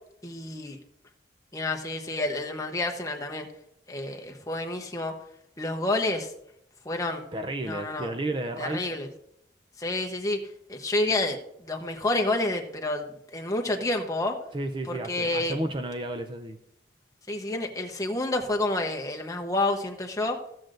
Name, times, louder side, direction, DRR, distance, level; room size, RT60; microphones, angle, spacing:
voice 1, 0.2-0.8 1.5-3.5 3.9-5.1 5.6-6.3 6.8-7.2 7.6-8.1 8.6-9.1 9.8-10.4 10.7-14.4 14.9-15.5 17.3-20.4, left 2 dB, 20° left, 2 dB, 0.9 m, -29 dB
voice 2, 7.3-8.9 14.5-16.6, right 1 dB, 25° right, 7 dB, 0.5 m, -32 dB
15.0 x 7.6 x 2.5 m, 0.78 s
head